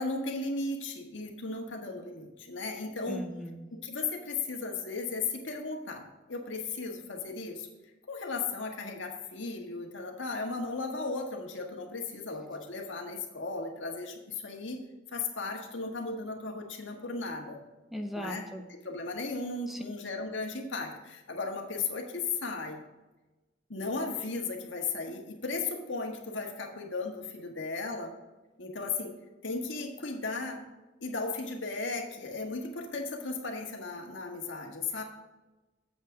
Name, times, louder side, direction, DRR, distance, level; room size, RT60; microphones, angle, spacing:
voice 1, 0.0-3.3 3.8-7.7 8.1-14.8 15.1-17.6 18.1-18.4 18.7-22.8 23.7-28.1 28.6-29.1 29.4-30.6 31.0-35.0, left 3 dB, 75° left, 2 dB, 1.6 m, -36 dB
voice 2, 3.1-3.7 17.9-18.7 19.7-19.9, equal, ahead, 4 dB, 0.6 m, -38 dB
8.3 x 7.9 x 3.9 m, 1.1 s
head